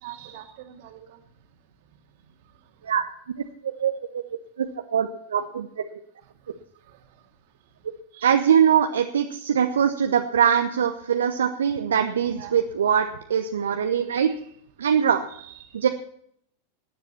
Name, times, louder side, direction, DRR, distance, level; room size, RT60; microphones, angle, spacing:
voice 1, 0.0-1.2 8.1-8.4 12.3-12.5 13.1-13.2 14.3-14.4 15.3-15.7, right 12 dB, 50° right, 5 dB, 2.2 m, -43 dB
voice 2, 3.8-4.2 4.6-4.7 4.9-5.8 8.2-14.3 14.8-15.2 15.7-15.9, right 8 dB, 65° right, 6 dB, 0.9 m, -22 dB
17.5 x 10.0 x 4.4 m, 0.69 s
figure-of-eight pair, 90°, 0 cm